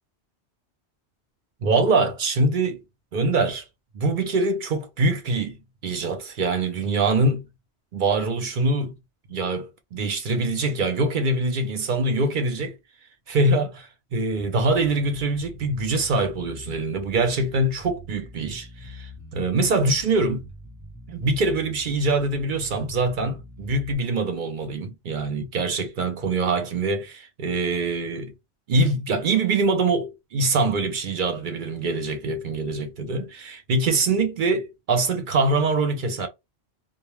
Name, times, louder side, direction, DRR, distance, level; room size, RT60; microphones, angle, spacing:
voice 1, 1.6-2.8 3.1-3.6 3.9-5.6 5.8-7.4 7.9-8.9 9.3-12.7 13.3-20.4 21.1-28.3 28.7-36.3, right 3 dB, 60° right, 0.6 m, -24 dB
Bass guitar, 14.4-24.0, left 1 dB, 25° left, 0.4 m, -44 dB
2.3 x 2.1 x 3.0 m
omnidirectional pair, 1.1 m